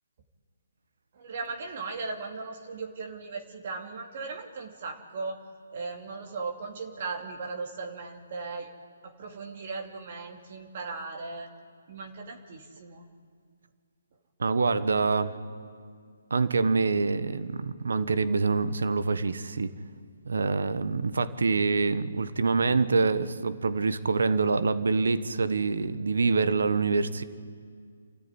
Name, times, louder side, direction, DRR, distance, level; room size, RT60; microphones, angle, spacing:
voice 1, 1.1-5.4 5.7-8.7 9.0-11.5 11.9-13.1, right 4 dB, 45° right, 3 dB, 2.6 m, -37 dB
voice 2, 14.4-15.4 16.3-19.7 20.3-27.2, right 4 dB, 75° right, 12 dB, 1.4 m, -26 dB
27.5 x 14.0 x 9.8 m, 2.2 s
hypercardioid pair, 155°, 0 cm